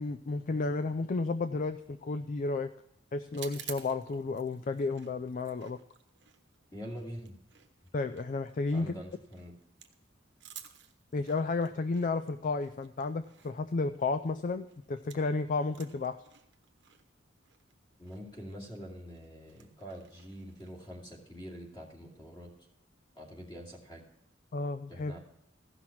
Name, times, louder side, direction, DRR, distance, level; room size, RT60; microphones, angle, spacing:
voice 1, 0.0-2.7 3.1-5.8 7.9-8.9 11.1-16.2 24.5-25.1, left 3 dB, 45° left, 11 dB, 0.4 m, -32 dB
sound 1, 3.3-15.4 15.6-20.9, right 11 dB, 65° right, 1.0 m, -53 dB
voice 2, 6.7-7.4 8.7-9.5 18.0-22.5 23.1-24.0 24.9-25.2, equal, 25° left, -1 dB, 2.6 m, -45 dB
15.5 x 6.0 x 5.9 m, 0.81 s
head